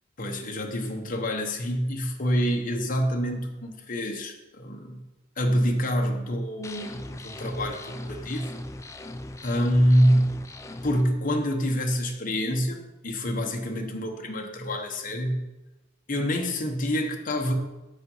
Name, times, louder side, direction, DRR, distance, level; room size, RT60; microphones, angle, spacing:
voice 1, 0.2-5.0 5.4-8.5 9.4-10.4 10.8-15.5 16.1-17.5, equal, 45° left, 3 dB, 1.1 m, -26 dB
sound 1, 6.6-11.0, left 1 dB, 15° left, 0.4 m, -39 dB
7.8 x 5.5 x 5.5 m, 1.0 s
head